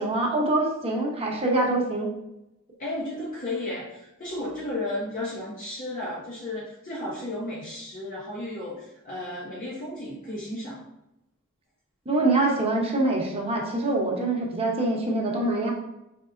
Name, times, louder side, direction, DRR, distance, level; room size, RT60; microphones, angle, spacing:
voice 1, 0.0-2.1 12.1-15.7, right 2 dB, 30° right, -1 dB, 0.9 m, -24 dB
voice 2, 2.8-10.8, left 1 dB, 40° left, -5 dB, 0.7 m, -33 dB
5.1 x 3.4 x 2.5 m, 0.89 s
head